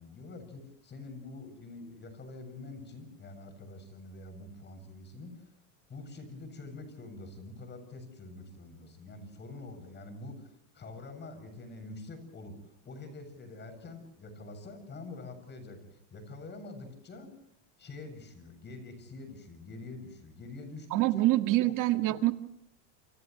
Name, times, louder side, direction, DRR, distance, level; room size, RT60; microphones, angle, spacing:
voice 1, 0.0-5.3 5.9-17.4 17.8-21.3, left 2 dB, 25° left, 9 dB, 7.6 m, -46 dB
voice 2, 20.9-22.3, right 17 dB, 50° right, 7 dB, 2.0 m, -25 dB
29.0 x 28.0 x 3.2 m, 0.72 s
supercardioid pair, 135°, 40 cm